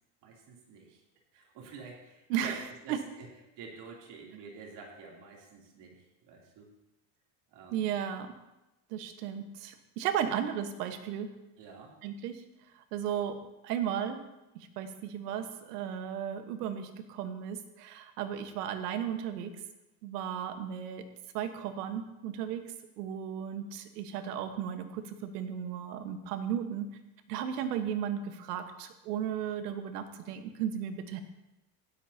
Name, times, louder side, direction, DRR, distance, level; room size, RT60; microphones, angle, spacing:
voice 1, 0.2-1.0 1.3-2.6 2.8-3.3 3.6-6.7 7.5-7.9 10.2-10.3 11.6-12.0, right 5 dB, 60° right, -1 dB, 3.3 m, -48 dB
voice 2, 2.3-2.6 2.9-3.0 7.7-8.3 8.9-11.3 12.0-12.4 12.7-14.2 14.5-19.6 20.0-21.1 21.3-26.9 27.3-31.2, right 9 dB, 90° right, 8 dB, 1.4 m, -35 dB
16.5 x 13.0 x 2.9 m, 0.96 s
supercardioid pair, 110°, 46 cm